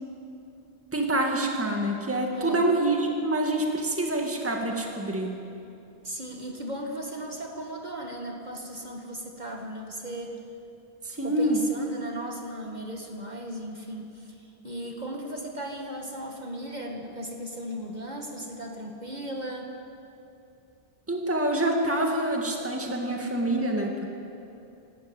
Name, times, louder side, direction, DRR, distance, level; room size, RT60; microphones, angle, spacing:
voice 1, 0.9-5.4 11.0-11.6 21.1-24.1, right 1 dB, 10° right, 1 dB, 1.9 m, -26 dB
voice 2, 2.3-2.6 6.0-10.4 11.1-19.7, right 1 dB, 40° right, 1 dB, 2.1 m, -36 dB
26.0 x 12.5 x 8.9 m, 2.7 s
omnidirectional pair, 1.1 m